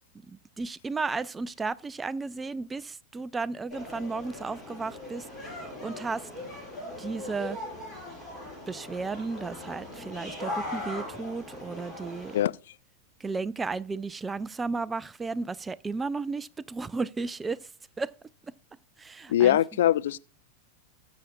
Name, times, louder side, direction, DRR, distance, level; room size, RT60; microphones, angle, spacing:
voice 1, 0.3-6.3 7.0-7.6 8.7-12.4 13.2-17.7 18.0-18.1 19.0-19.6, right 4 dB, 15° right, 0.4 m, -34 dB
sound 1, 3.7-12.4, left 1 dB, 5° left, 5.9 m, -39 dB
voice 2, 19.3-20.2, left 12 dB, 60° left, 0.4 m, -22 dB
19.5 x 7.1 x 2.4 m
figure-of-eight pair, 90°, 0 cm